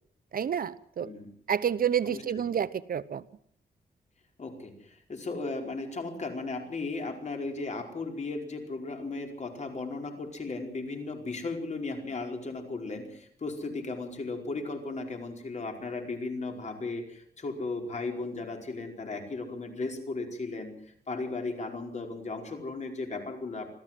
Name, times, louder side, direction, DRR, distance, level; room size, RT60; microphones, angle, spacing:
voice 1, 0.3-1.1 1.5-3.2, right 8 dB, 60° right, 0.9 m, -29 dB
voice 2, 4.4-20.7 21.1-23.7, left 3 dB, 45° left, 4.9 m, -36 dB
26.0 x 15.0 x 7.6 m
wide cardioid pair, 120°, 17 cm